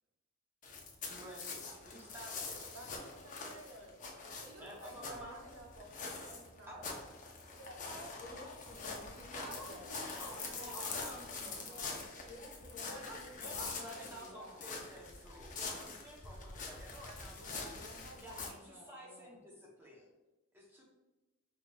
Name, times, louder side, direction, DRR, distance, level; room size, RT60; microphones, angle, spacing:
sound 1, 0.6-18.5, left 4 dB, 40° left, 0.6 m, -45 dB
voice 1, 1.1-2.7 4.6-5.5 6.7-7.0 9.4-9.7 10.1-11.8 12.8-19.5 19.8-20.1 20.5-20.8, equal, 10° right, -3 dB, 0.7 m, -51 dB
voice 2, 2.7-4.0 4.4-6.8 7.5-8.5 9.4-10.9 11.8-12.1, right 1 dB, 85° right, 1 dB, 0.7 m, -52 dB
voice 3, 8.2-9.9 10.4-10.9 11.6-14.6 17.3-19.3, left 1 dB, 55° left, -5 dB, 1.1 m, -53 dB
4.8 x 2.7 x 2.2 m, 1.1 s
head